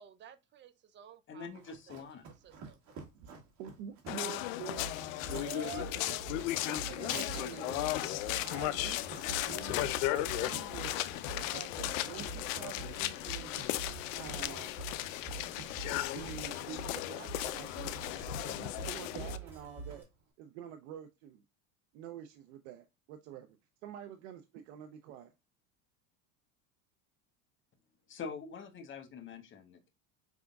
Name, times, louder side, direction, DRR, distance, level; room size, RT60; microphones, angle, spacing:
voice 1, 0.0-2.0 2.4-2.8 5.4-6.2 7.3-7.6, right 8 dB, 30° right, 0.4 m, -49 dB
voice 2, 1.3-2.3 28.1-29.9, left 5 dB, 30° left, 1.0 m, -45 dB
Run, 1.5-20.2, right 4 dB, 45° right, 1.7 m, -51 dB
voice 3, 3.1-4.9 6.7-7.8 8.5-11.0 11.4-13.6 14.1-14.7 16.1-17.9 18.3-20.1 20.4-21.4 21.9-23.6 23.8-25.3, right 9 dB, 75° right, 0.7 m, -47 dB
sound 1, 4.1-19.4, left 16 dB, 80° left, 0.5 m, -36 dB
sound 2, 4.5-20.0, right 3 dB, 5° right, 2.1 m, -47 dB
5.0 x 3.6 x 2.3 m
supercardioid pair, 110°, 39 cm